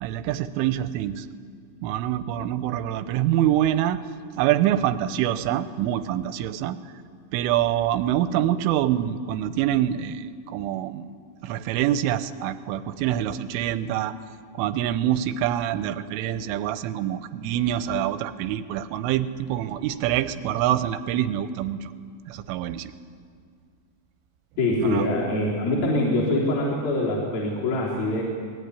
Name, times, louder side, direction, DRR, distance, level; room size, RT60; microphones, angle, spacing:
voice 1, 0.0-1.3 1.8-4.0 4.4-6.8 7.3-11.0 11.4-14.2 14.6-21.9 22.3-22.9 24.8-25.1, right 11 dB, 90° right, 12 dB, 3.4 m, -25 dB
voice 2, 24.6-28.2, left 1 dB, 50° left, -4 dB, 5.3 m, -24 dB
28.5 x 20.0 x 9.9 m, 2.1 s
omnidirectional pair, 5.6 m